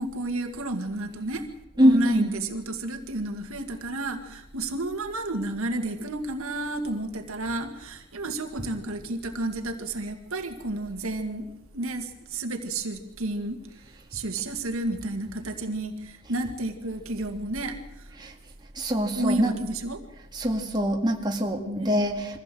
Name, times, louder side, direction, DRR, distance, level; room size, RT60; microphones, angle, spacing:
voice 1, 0.0-1.5 1.8-11.5 11.7-18.1 19.2-20.0 21.7-21.9, right 2 dB, 65° right, 5 dB, 2.0 m, -31 dB
voice 2, 1.8-2.3 18.2-18.3 18.8-19.6 20.3-22.4, equal, 20° right, 1 dB, 2.1 m, -23 dB
23.5 x 15.5 x 7.7 m, 0.89 s
head